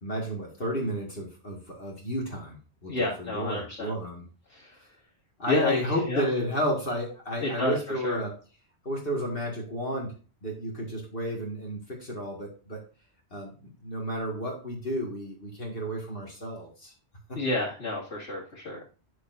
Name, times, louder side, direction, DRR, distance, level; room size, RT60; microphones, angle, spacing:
voice 1, 0.0-2.6 2.8-4.3 5.4-8.3 8.8-10.1 10.4-12.8 13.3-16.9 17.3-17.4, equal, 55° left, -2 dB, 2.2 m, -32 dB
voice 2, 2.9-3.9 4.5-4.7 5.5-6.2 7.4-8.2 17.3-18.8, left 2 dB, 75° left, -7 dB, 2.4 m, -29 dB
10.0 x 6.5 x 2.6 m, 0.35 s
omnidirectional pair, 1.2 m